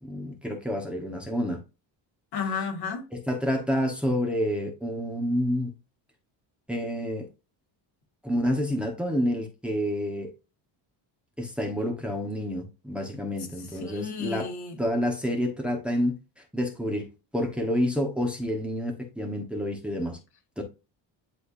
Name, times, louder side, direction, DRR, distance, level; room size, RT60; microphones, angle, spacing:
voice 1, 0.0-1.6 3.1-5.7 6.7-7.3 8.2-10.3 11.4-14.5 14.8-16.1 16.5-17.1 17.3-20.2 20.6-20.7, equal, ahead, 1.3 m, -28 dB
voice 2, 2.3-3.1 13.7-14.8, left 6 dB, 55° left, 2.1 m, -32 dB
10.5 x 3.5 x 2.7 m
cardioid pair, 155°, 45 cm